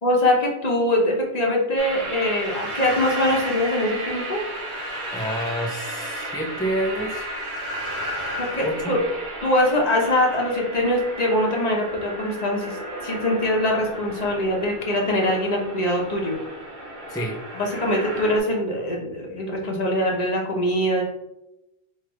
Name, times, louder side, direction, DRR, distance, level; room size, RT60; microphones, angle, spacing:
voice 1, 0.0-4.4 8.4-9.0 9.4-12.8 13.0-16.4 17.6-21.0, left 1 dB, 40° left, -1 dB, 0.9 m, -23 dB
Fresh Giant Pipes, 1.8-18.4, right 1 dB, 55° right, 1.0 m, -33 dB
voice 2, 5.1-7.3 8.6-9.0 17.1-17.4, right 1 dB, 5° left, 0 dB, 0.4 m, -28 dB
3.2 x 3.2 x 4.7 m, 0.88 s
omnidirectional pair, 1.1 m